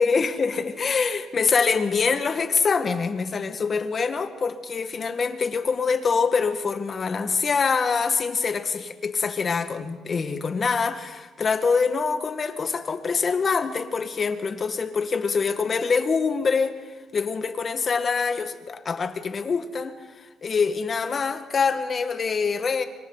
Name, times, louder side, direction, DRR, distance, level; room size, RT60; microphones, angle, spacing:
voice 1, 0.0-16.7 17.1-19.9 20.4-22.8, left 5 dB, 45° left, 8 dB, 1.8 m, -25 dB
27.0 x 25.0 x 4.1 m, 1.4 s
cardioid pair, 90°, 0 cm